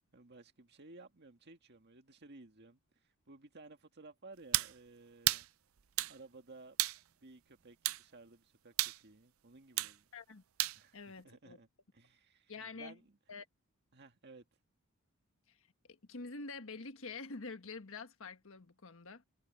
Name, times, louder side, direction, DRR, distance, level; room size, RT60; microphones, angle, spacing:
voice 1, 0.1-2.8 3.3-5.5 6.1-6.9 7.2-10.1 10.7-13.2 13.9-14.5, right 3 dB, 50° right, 1.9 m, -56 dB
sound 1, 4.5-4.7 5.3-5.5 6.0-6.2 6.8-7.0 7.8-8.0 8.8-9.0 9.8-9.9 10.6-10.8, right 16 dB, 70° right, 0.5 m, -32 dB
voice 2, 10.1-10.4 10.9-11.6 12.5-13.0 13.3-13.5 15.5-15.6 15.9-19.2, left 4 dB, 65° left, 1.5 m, -47 dB
head